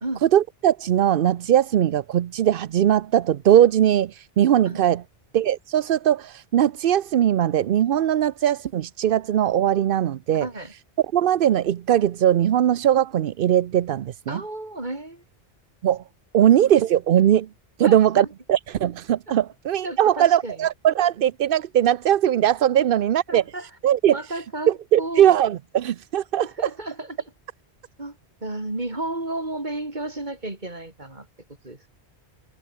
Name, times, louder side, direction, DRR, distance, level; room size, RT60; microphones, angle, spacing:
voice 1, 0.3-5.0 5.3-10.5 11.1-14.4 15.8-16.0 16.3-17.5 17.8-23.4 23.8-24.2 24.7-26.5, right 10 dB, 60° right, 0.7 m, -20 dB
voice 2, 10.3-10.7 14.3-15.2 16.4-16.5 17.8-18.3 19.8-20.7 23.3-23.7 24.1-25.3 26.4-27.3 28.0-31.3 31.6-31.8, right 2 dB, 45° right, 3.9 m, -33 dB
omnidirectional pair, 1.1 m